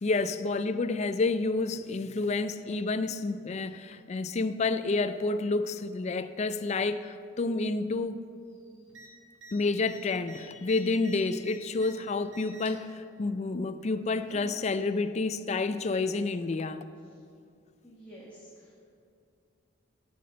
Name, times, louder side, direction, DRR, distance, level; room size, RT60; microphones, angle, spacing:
voice 1, 0.0-8.2 9.5-16.9, left 3 dB, 35° left, 12 dB, 0.4 m, -29 dB
voice 2, 8.5-8.9 17.8-18.8, right 1 dB, 10° left, -7 dB, 1.4 m, -51 dB
sound 1, 8.9-9.1 9.4-9.5 9.8-11.9 12.3-12.8 13.8-14.5 15.6-15.7, right 2 dB, 70° right, 1.6 m, -50 dB
12.5 x 5.1 x 6.9 m, 2.4 s
head